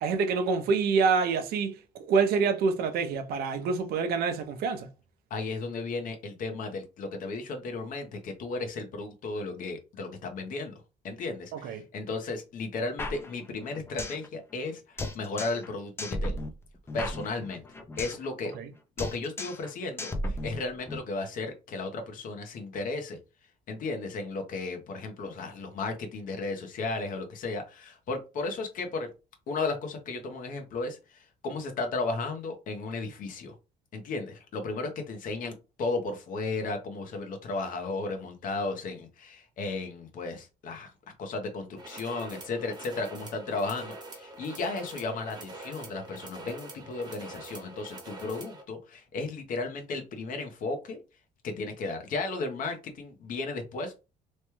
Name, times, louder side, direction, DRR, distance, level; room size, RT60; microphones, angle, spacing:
voice 1, 0.0-4.9 11.5-11.8 18.5-18.7, right 5 dB, 65° right, 0.6 m, -27 dB
voice 2, 5.3-16.4 16.9-17.6 18.0-18.5 19.0-23.2 23.7-29.1 29.5-33.6 33.9-40.9 41.2-51.0 51.4-54.0, left 3 dB, 55° left, 0.8 m, -34 dB
sound 1, 13.0-14.3 14.5-14.6 15.0-15.7 16.0-18.3 18.5-18.7 19.0-19.7 20.0-21.0, left 1 dB, 15° left, 0.4 m, -35 dB
sound 2, 41.8-48.6, right 2 dB, 25° right, 0.9 m, -44 dB
3.1 x 2.2 x 3.0 m
cardioid pair, 125°, 17 cm